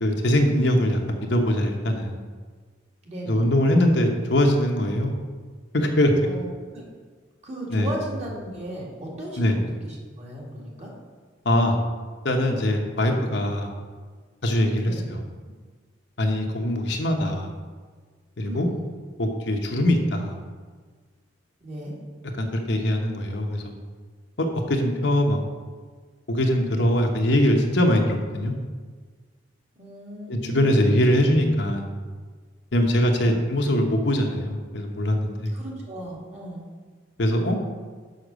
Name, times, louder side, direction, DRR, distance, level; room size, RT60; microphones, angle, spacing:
voice 1, 0.0-2.2 3.3-5.1 5.7-6.1 7.7-7.9 9.4-9.5 11.4-11.7 12.2-13.7 14.4-15.2 16.2-17.5 18.4-18.7 19.2-20.4 22.4-23.7 24.4-25.4 26.3-28.5 30.3-31.9 32.7-35.5 37.2-37.6, left 1 dB, 60° left, 2 dB, 1.0 m, -22 dB
voice 2, 3.1-3.5 6.2-6.8 7.4-10.9 14.8-15.1 18.4-18.8 21.6-21.9 27.3-27.4 29.8-30.9 35.5-36.6, right 1 dB, 35° right, -3 dB, 2.0 m, -36 dB
6.6 x 5.7 x 6.2 m, 1.5 s
head